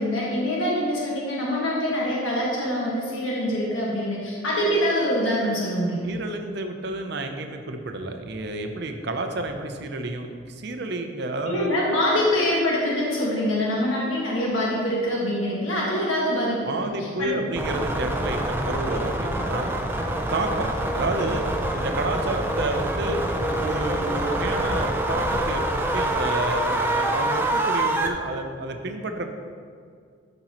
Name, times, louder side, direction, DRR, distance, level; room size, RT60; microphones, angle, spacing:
voice 1, 0.0-6.1 11.5-16.7 17.0-17.3, equal, 90° left, -5 dB, 1.6 m, -24 dB
voice 2, 6.0-11.7 16.6-19.7 20.3-21.4 21.7-29.3, right 2 dB, 60° right, 5 dB, 0.7 m, -30 dB
sound 1, 17.6-28.1, right 1 dB, 10° right, 0.5 m, -26 dB
11.5 x 5.4 x 3.0 m, 2.2 s
head